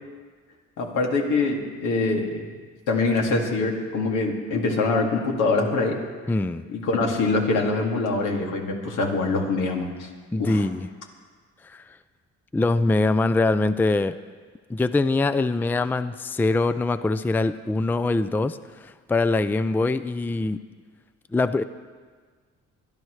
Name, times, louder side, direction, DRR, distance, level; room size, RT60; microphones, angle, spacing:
voice 1, 0.8-2.5 2.9-6.0 6.7-10.1 10.4-10.6, left 3 dB, 85° left, 0 dB, 2.3 m, -24 dB
voice 2, 6.3-6.7 10.3-10.9 11.6-11.8 12.5-14.1 14.7-20.6 21.3-21.6, left 3 dB, 5° left, 13 dB, 0.4 m, -23 dB
24.0 x 11.5 x 3.2 m, 1.5 s
cardioid pair, 90°, 30 cm